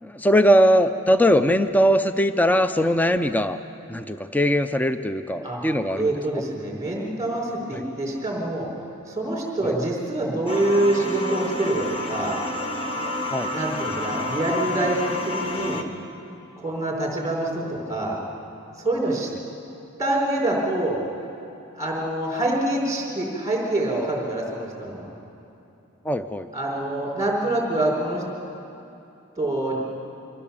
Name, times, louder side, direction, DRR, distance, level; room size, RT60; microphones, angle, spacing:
voice 1, 0.0-3.6 3.9-6.4 7.7-7.8 9.6-9.7 13.3-13.5 26.0-26.5, equal, 10° left, 10 dB, 0.4 m, -20 dB
voice 2, 5.9-8.7 9.1-12.4 13.5-15.9 16.6-18.2 18.8-19.3 20.0-21.0 21.7-25.0 26.5-28.2 29.4-29.8, right 1 dB, 15° right, -2 dB, 4.4 m, -25 dB
sound 1, 10.5-15.8, left 2 dB, 25° left, 1.1 m, -29 dB
24.5 x 15.5 x 7.1 m, 2.8 s
head